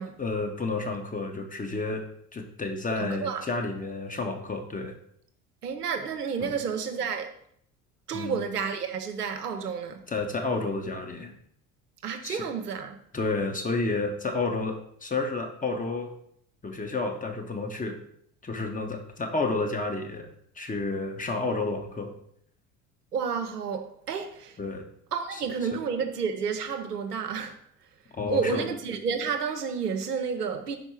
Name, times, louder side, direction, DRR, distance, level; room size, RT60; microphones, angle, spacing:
voice 1, 0.2-2.0 2.3-4.9 6.4-6.5 8.1-8.4 10.1-11.3 12.2-12.5 13.1-16.1 16.6-18.0 18.4-22.1 24.6-24.9 25.3-25.4 28.1-28.7, left 3 dB, 15° left, 1.0 m, -31 dB
voice 2, 3.0-3.4 5.6-7.3 8.1-10.0 12.0-13.0 23.1-24.6 25.1-27.6 28.3-30.8, right 6 dB, 85° right, 0.8 m, -30 dB
5.4 x 4.4 x 4.6 m
figure-of-eight pair, 65°, 46 cm